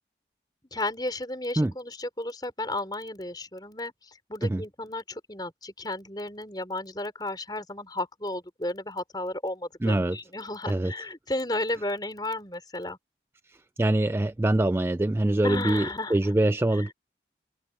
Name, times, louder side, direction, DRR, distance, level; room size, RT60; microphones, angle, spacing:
voice 1, 0.6-13.0 15.4-16.3 16.7-16.9, left 2 dB, 25° left, 5.3 m, -33 dB
voice 2, 9.8-10.2 10.7-10.9 13.8-16.9, right 1 dB, 15° right, 0.3 m, -24 dB
open air
head